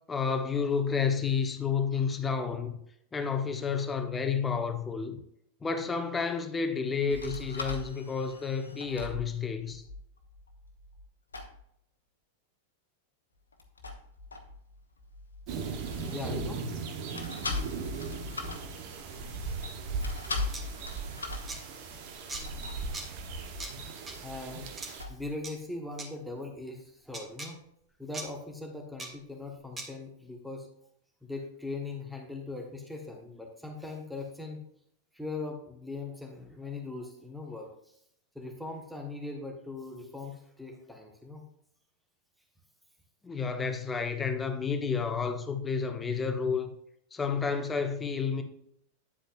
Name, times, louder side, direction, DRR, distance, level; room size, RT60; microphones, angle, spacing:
voice 1, 0.1-2.7 3.1-5.2 5.6-9.8 43.2-46.7 47.1-48.4, left 5 dB, 15° left, 1.1 m, -30 dB
sound 1, 7.1-11.1 11.3-11.6 13.5-16.8 17.1-25.4, left 3 dB, 75° left, 1.1 m, -41 dB
voice 2, 15.5-16.6 19.6-20.3 21.3-21.5 22.0-22.2 22.9-23.0 23.8-27.6 28.0-30.7 31.2-34.6 35.1-38.0 38.3-41.4, left 3 dB, ahead, 1.4 m, -41 dB
sound 2, 15.5-25.0, right 4 dB, 45° right, 1.2 m, -38 dB
sound 3, 20.5-20.6 21.5-21.6 22.3-22.4 22.9-23.1 23.6-23.7 24.1-24.2 24.8-24.9 25.4-25.5 26.0-26.1 27.1-27.5 28.1-28.3 29.0-29.1 29.8-29.9, right 2 dB, 15° right, 1.7 m, -39 dB
10.0 x 8.0 x 2.5 m
figure-of-eight pair, 90°, 0 cm